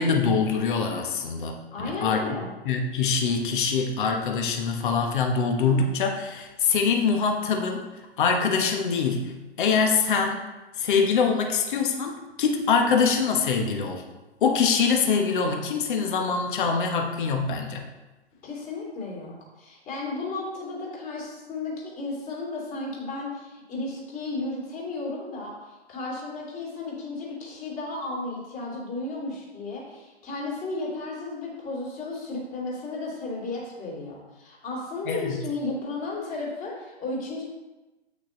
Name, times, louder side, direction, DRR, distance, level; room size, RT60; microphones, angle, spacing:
voice 1, 0.0-2.3 2.6-10.4 10.8-14.0 14.4-17.9 35.1-35.4, left 5 dB, 50° left, 3 dB, 1.3 m, -24 dB
voice 2, 1.7-2.5 18.4-37.4, left 3 dB, 25° left, -3 dB, 2.8 m, -34 dB
8.5 x 6.1 x 3.9 m, 1.1 s
figure-of-eight pair, 125°, 33 cm